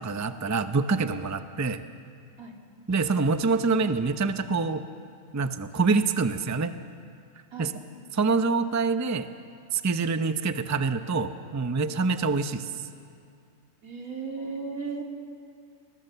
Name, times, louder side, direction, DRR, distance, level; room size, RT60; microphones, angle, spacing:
voice 1, 0.0-1.8 2.9-4.8 5.3-6.7 7.6-7.7 8.1-9.3 9.7-12.7, right 4 dB, 20° right, 9 dB, 0.6 m, -26 dB
voice 2, 13.8-15.0, right 4 dB, 85° right, 1 dB, 3.1 m, -35 dB
29.0 x 20.5 x 6.8 m, 2.3 s
omnidirectional pair, 1.5 m